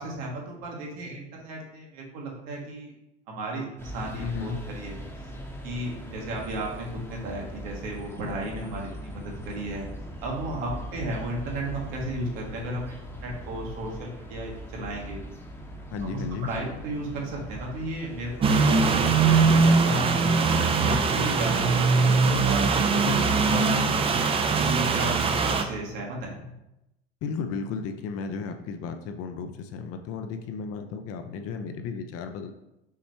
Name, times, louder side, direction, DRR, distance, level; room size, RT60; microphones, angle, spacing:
voice 1, 0.0-2.9 3.3-5.0 5.6-9.9 10.2-12.9 13.2-15.2 16.0-20.4 20.8-23.8 24.5-26.5, right 1 dB, 65° right, -1 dB, 1.3 m, -34 dB
sound 1, 3.8-20.5, equal, 5° left, 0.8 m, -41 dB
voice 2, 4.1-4.6 15.9-16.5 22.9-23.4 27.2-32.5, left 5 dB, 45° left, 7 dB, 0.5 m, -34 dB
sound 2, 18.4-25.6, right 4 dB, 20° right, 0.3 m, -21 dB
5.6 x 3.0 x 3.0 m, 0.91 s
hypercardioid pair, 75°, 33 cm